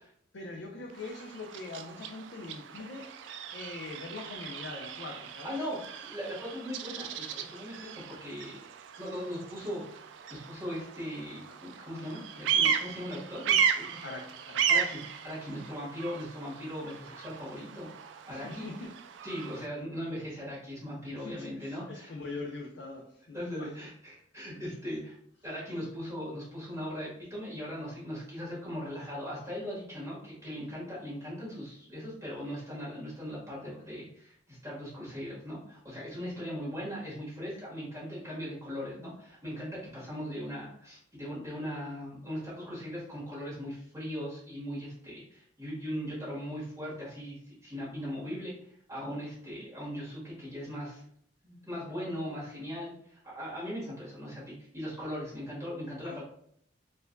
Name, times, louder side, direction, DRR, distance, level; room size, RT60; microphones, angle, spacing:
voice 1, 0.3-3.1 3.5-5.6 14.0-14.7 18.3-18.9 21.1-23.7 40.0-40.3 56.0-56.2, left 3 dB, 70° left, 0 dB, 0.5 m, -42 dB
Bird vocalization bird call bird song, 0.9-19.7, right 7 dB, 75° right, 0.3 m, -35 dB
voice 2, 5.4-8.6 9.0-14.0 14.7-18.7 19.2-22.1 23.3-25.1 25.4-51.0 51.4-56.2, equal, 15° right, -8 dB, 1.5 m, -39 dB
4.4 x 2.5 x 2.2 m, 0.68 s
head